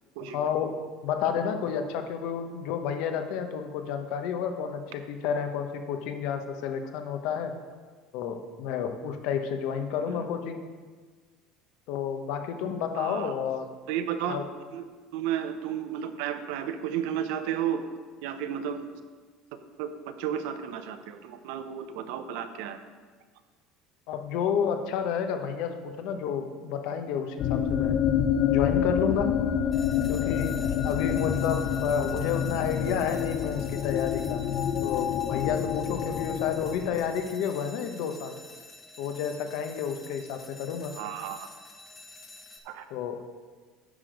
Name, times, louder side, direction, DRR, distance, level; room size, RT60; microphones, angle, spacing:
voice 1, 0.3-0.8 1.0-7.5 8.1-10.6 11.9-13.7 14.3-14.4 24.1-28.0 28.5-29.3 30.1-30.6 30.8-34.4 34.8-38.3 39.0-40.9 42.9-43.1, left 7 dB, 70° left, 6 dB, 0.9 m, -30 dB
voice 2, 12.9-13.3 13.9-14.4 14.7-14.8 15.1-17.8 18.2-18.9 19.8-22.8 41.0-41.5 42.6-42.8, right 9 dB, 80° right, 9 dB, 0.7 m, -33 dB
sound 1, 27.4-37.2, left 9 dB, 45° left, 0.5 m, -28 dB
sound 2, 29.7-42.6, left 2 dB, 20° left, 0.9 m, -49 dB
9.8 x 6.0 x 5.1 m, 1.5 s
cardioid pair, 140°, 0 cm